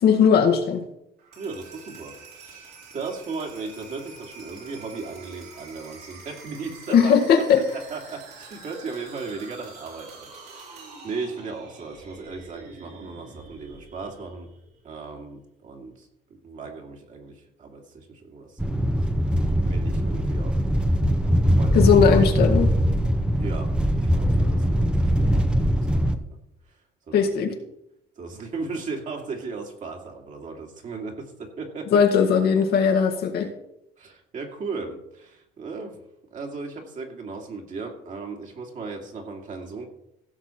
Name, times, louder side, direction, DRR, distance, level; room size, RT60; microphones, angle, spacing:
voice 1, 0.0-0.8 6.9-7.6 21.7-22.7 27.1-27.5 31.9-33.5, left 7 dB, 70° left, 4 dB, 1.8 m, -18 dB
sound 1, 1.2-15.0, right 4 dB, 70° right, 4.3 m, -46 dB
voice 2, 1.4-7.2 7.7-14.5 14.8-19.0 19.6-20.6 21.5-21.9 23.4-26.4 26.7-26.8 27.1-27.3 28.2-32.0 34.0-36.0 36.3-39.8, right 4 dB, 50° right, 1 dB, 2.4 m, -37 dB
sound 2, 18.6-26.2, equal, 5° right, 0.8 m, -21 dB
16.0 x 6.4 x 4.4 m, 0.81 s
cardioid pair, 110°, 17 cm